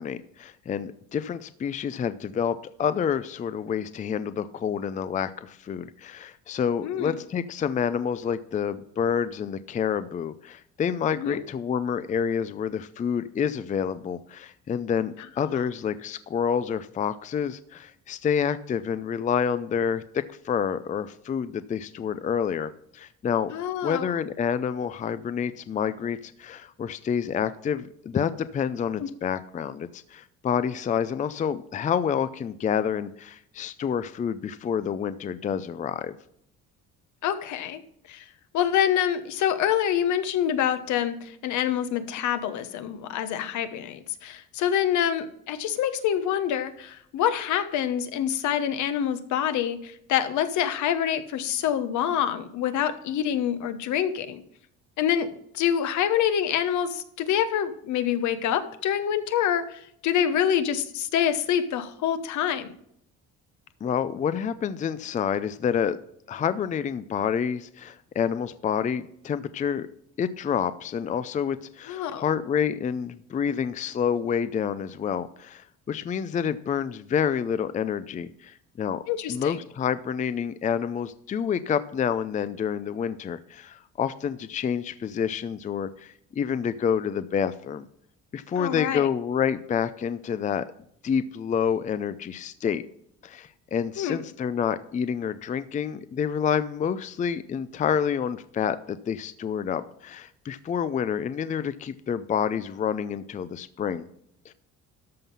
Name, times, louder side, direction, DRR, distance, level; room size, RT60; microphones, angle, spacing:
voice 1, 0.0-23.5 23.8-36.2 63.8-66.0 66.3-69.9 70.2-79.0 79.3-87.9 88.3-90.7 91.0-92.8 93.2-104.1 104.5-104.6, left 7 dB, 25° left, 13 dB, 0.4 m, -28 dB
voice 2, 6.8-7.1 11.2-11.4 15.5-15.6 23.5-24.0 29.0-29.1 37.2-37.8 38.1-38.2 38.5-54.4 55.0-62.7 71.9-72.3 79.1-79.6 88.6-89.1 94.0-94.2, left 9 dB, 70° left, 10 dB, 1.2 m, -26 dB
13.0 x 5.5 x 5.5 m, 0.69 s
cardioid pair, 130°, 30 cm